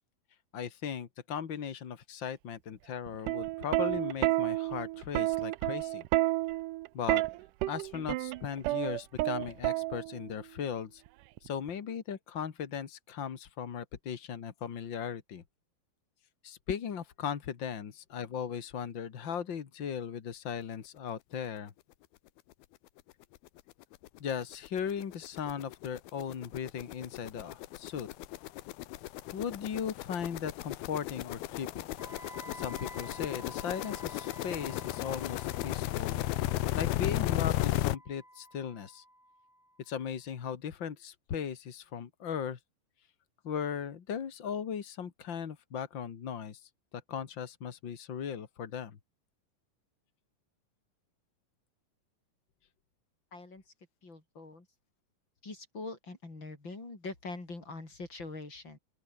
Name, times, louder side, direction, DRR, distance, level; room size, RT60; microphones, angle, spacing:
voice 1, 0.5-6.0 6.9-7.2 7.7-11.0 11.4-15.4 16.4-21.7 24.2-28.1 29.3-31.9 32.5-36.2 36.7-39.0 39.8-42.6 43.4-46.7 47.1-49.0, left 7 dB, 45° left, 1.6 m, -37 dB
Plucked string instrument, 3.1-10.3 11.4-11.7, right 18 dB, 75° right, 2.0 m, -30 dB
sound 1, 22.5-22.6 23.0-23.1 23.4-38.0, left 16 dB, 85° left, 2.9 m, -35 dB
Wind instrument woodwind instrument, 32.0-39.9, equal, 5° right, 7.5 m, -51 dB
voice 2, 53.3-53.6 54.0-54.7 55.4-58.8, left 3 dB, 30° left, 6.4 m, -43 dB
open air
omnidirectional pair, 4.3 m